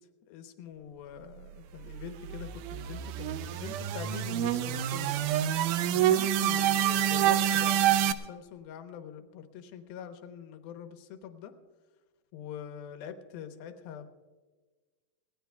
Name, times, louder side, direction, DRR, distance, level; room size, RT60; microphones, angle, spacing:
voice 1, 0.3-5.2 5.9-11.5 12.3-14.1, left 8 dB, 80° left, 7 dB, 2.9 m, -43 dB
sound 1, 1.7-8.1, right 11 dB, 90° right, 1.8 m, -27 dB
22.0 x 18.0 x 2.3 m, 1.3 s
omnidirectional pair, 4.3 m